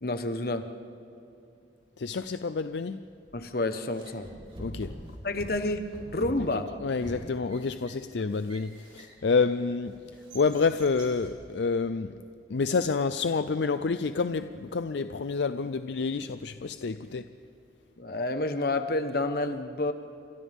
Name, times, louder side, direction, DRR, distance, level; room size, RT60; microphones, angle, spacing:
voice 1, 0.0-0.7 3.3-4.3 5.2-6.7 8.2-8.3 18.0-19.9, left 2 dB, 55° left, 1.2 m, -29 dB
voice 2, 2.0-3.0 4.6-5.0 6.8-10.0 10.3-12.1 12.5-17.3, left 4 dB, 75° left, 0.5 m, -28 dB
sound 1, 3.3-3.5 3.9-9.4 9.9-11.4, equal, 30° right, 4.2 m, -45 dB
29.5 x 26.0 x 3.6 m
head